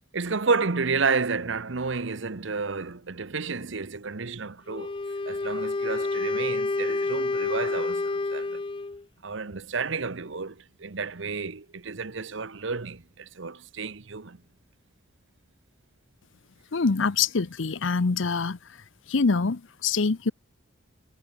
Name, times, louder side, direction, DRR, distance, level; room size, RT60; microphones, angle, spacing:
voice 1, 0.1-5.0 5.3-8.6 9.2-14.4, right 4 dB, 65° right, 1.0 m, -31 dB
Wind instrument woodwind instrument, 4.7-9.0, left 3 dB, 25° left, 0.4 m, -29 dB
voice 2, 16.7-18.6 19.1-20.3, left 4 dB, 70° left, 0.7 m, -25 dB
head